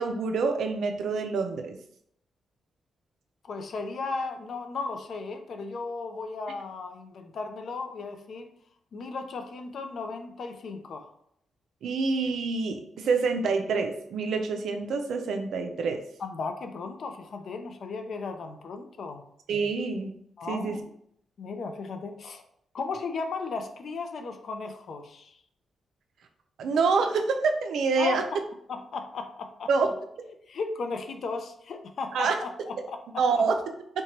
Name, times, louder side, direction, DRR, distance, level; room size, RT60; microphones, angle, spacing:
voice 1, 0.0-1.8 11.8-16.0 19.5-20.1 20.5-20.8 26.6-28.2 29.7-29.9 32.1-32.4 33.2-33.6, right 4 dB, 80° right, 5 dB, 0.4 m, -26 dB
voice 2, 3.4-8.5 8.9-11.1 16.2-19.2 20.4-20.8 21.4-22.4 22.7-25.4 28.0-28.2 28.7-29.7 30.5-33.4, left 4 dB, 65° left, 6 dB, 0.4 m, -35 dB
2.7 x 2.2 x 2.9 m, 0.69 s
cardioid pair, 80°, 0 cm